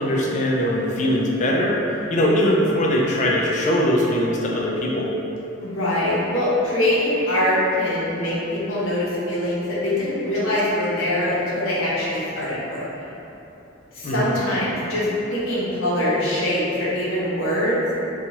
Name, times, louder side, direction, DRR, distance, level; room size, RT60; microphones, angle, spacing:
voice 1, 0.0-5.1 14.0-14.4, equal, 40° left, -3 dB, 0.3 m, -21 dB
voice 2, 5.6-12.9 13.9-17.8, left 1 dB, 85° left, -8 dB, 0.8 m, -23 dB
2.8 x 2.3 x 2.8 m, 3.0 s
head